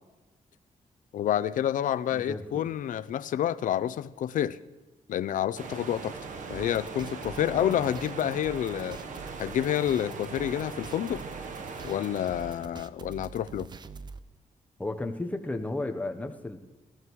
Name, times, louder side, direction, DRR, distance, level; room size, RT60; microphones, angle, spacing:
voice 1, 1.1-4.6 5.1-6.2 6.5-9.0 9.4-11.2 11.8-13.7, left 11 dB, 85° left, 16 dB, 0.4 m, -29 dB
voice 2, 2.1-2.7 7.5-7.8 14.8-16.6, left 2 dB, 10° left, 5 dB, 0.8 m, -34 dB
sound 1, 5.6-12.7, right 4 dB, 75° right, 0.9 m, -40 dB
sound 2, 6.5-14.2, right 5 dB, 35° right, 0.4 m, -46 dB
19.0 x 14.5 x 3.1 m, 1.1 s
wide cardioid pair, 165°, 13 cm